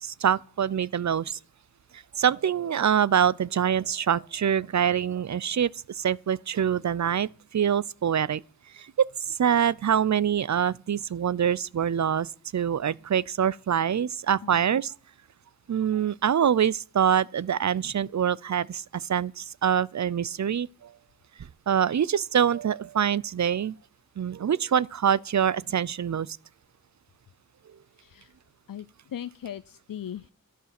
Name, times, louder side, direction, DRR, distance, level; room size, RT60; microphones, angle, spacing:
voice 1, 0.0-1.4 1.9-8.4 8.7-14.9 15.7-20.9 21.7-23.8 24.2-26.4, right 8 dB, 60° right, 0.5 m, -25 dB
voice 2, 28.0-28.3 28.7-30.3, left 10 dB, 80° left, 0.5 m, -39 dB
12.0 x 11.0 x 5.9 m
wide cardioid pair, 45°, 33 cm